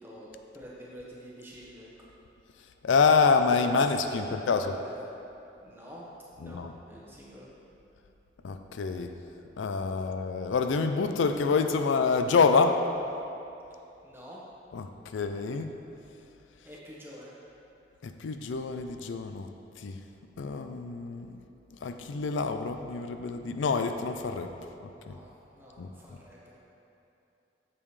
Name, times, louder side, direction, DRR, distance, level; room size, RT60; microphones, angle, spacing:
voice 1, 0.0-1.9 4.2-4.9 5.6-6.0 6.4-6.6 6.9-7.5 14.0-14.4 16.6-17.3 24.6-26.6, equal, 10° right, -6 dB, 1.2 m, -47 dB
voice 2, 2.8-4.7 6.4-6.7 8.4-9.1 9.6-12.8 14.7-15.7 18.0-19.5 19.8-20.0 20.4-21.4 21.7-24.5 24.8-25.2 25.8-25.9, left 4 dB, 85° left, 7 dB, 0.4 m, -27 dB
8.7 x 6.9 x 3.2 m, 2.8 s
head